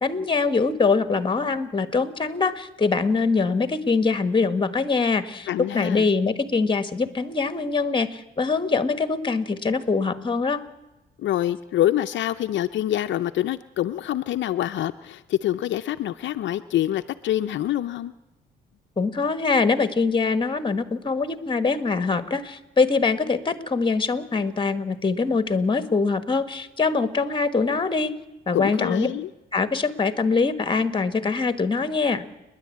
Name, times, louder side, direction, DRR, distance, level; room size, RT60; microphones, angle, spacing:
voice 1, 0.0-5.5 5.7-10.6 19.0-28.1 28.5-29.1 29.5-32.2, left 4 dB, 25° left, 11 dB, 1.4 m, -23 dB
voice 2, 5.5-6.1 11.2-18.1 28.5-29.3, left 12 dB, 70° left, 8 dB, 0.6 m, -26 dB
29.5 x 10.5 x 8.4 m, 1.0 s
cardioid pair, 90°, 20 cm